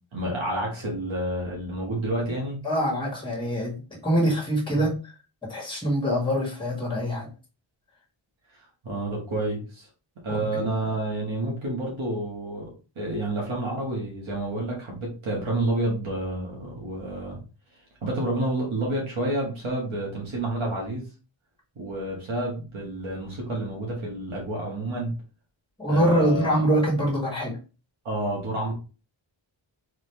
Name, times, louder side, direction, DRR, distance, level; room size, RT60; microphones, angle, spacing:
voice 1, 0.1-2.6 8.8-9.9 10.2-12.7 12.9-17.4 18.0-21.1 21.7-25.1 25.9-26.6 28.0-28.7, right 1 dB, 75° right, -3 dB, 1.6 m, -29 dB
voice 2, 2.6-5.0 5.5-7.3 10.3-10.5 25.8-27.6, equal, 10° left, -3 dB, 1.7 m, -24 dB
3.9 x 3.1 x 3.2 m, 0.33 s
wide cardioid pair, 115°, 48 cm